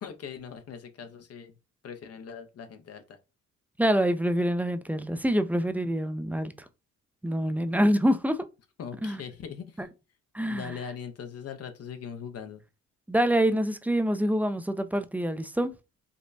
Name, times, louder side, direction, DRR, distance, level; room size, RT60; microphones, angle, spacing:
voice 1, 0.0-1.5 1.8-3.2 8.8-9.8 10.5-12.6, left 7 dB, 55° left, 0.7 m, -40 dB
voice 2, 3.8-6.5 7.2-8.5 9.0-9.2 9.8-9.9 10.3-10.7 13.1-15.7, equal, 5° right, 0.4 m, -26 dB
5.1 x 2.1 x 2.6 m
cardioid pair, 90°, 30 cm